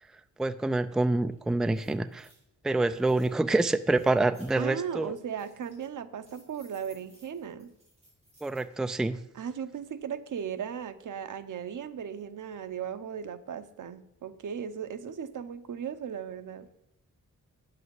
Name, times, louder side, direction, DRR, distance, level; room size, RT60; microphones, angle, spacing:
voice 1, 0.4-2.3 2.6-5.1 8.4-9.2, right 2 dB, ahead, 0.4 m, -26 dB
sound 1, 1.3-1.4 1.7-2.4 2.9-3.3 3.9-4.6 5.1-5.9 6.2-8.7, equal, 20° right, 5.8 m, -61 dB
voice 2, 4.6-7.7 9.3-16.7, right 8 dB, 80° right, 0.9 m, -37 dB
9.4 x 7.8 x 7.8 m
wide cardioid pair, 180°, 30 cm